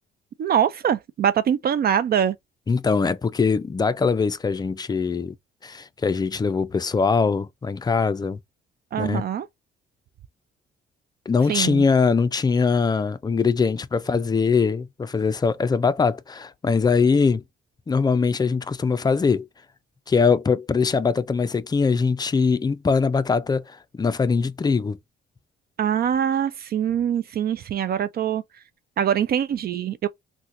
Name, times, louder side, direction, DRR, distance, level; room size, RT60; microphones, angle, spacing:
voice 1, 0.4-2.4 8.9-9.5 11.5-11.8 25.8-28.4 29.0-30.1, right 9 dB, 50° right, 0.4 m, -23 dB
voice 2, 2.7-5.3 5.6-8.4 9.0-9.2 11.3-17.4 17.9-19.5 20.1-25.0, left 5 dB, 20° left, 0.3 m, -22 dB
3.7 x 2.1 x 2.9 m
cardioid pair, 90°, 20 cm